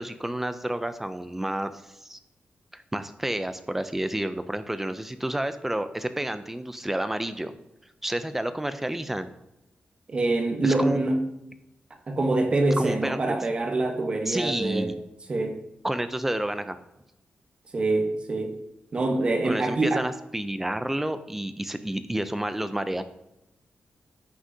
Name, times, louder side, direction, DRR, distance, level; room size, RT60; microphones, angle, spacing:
voice 1, 0.0-1.7 2.0-2.2 2.7-7.5 8.0-9.3 10.6-11.0 12.8-13.2 14.3-15.0 15.8-16.8 19.4-23.0, right 1 dB, 10° right, 11 dB, 0.5 m, -30 dB
voice 2, 10.1-11.2 12.1-14.9 15.3-15.6 17.7-18.6 18.9-20.0, right 2 dB, 35° right, 4 dB, 1.0 m, -25 dB
15.0 x 6.2 x 2.8 m, 0.88 s
wide cardioid pair, 170°, 3 cm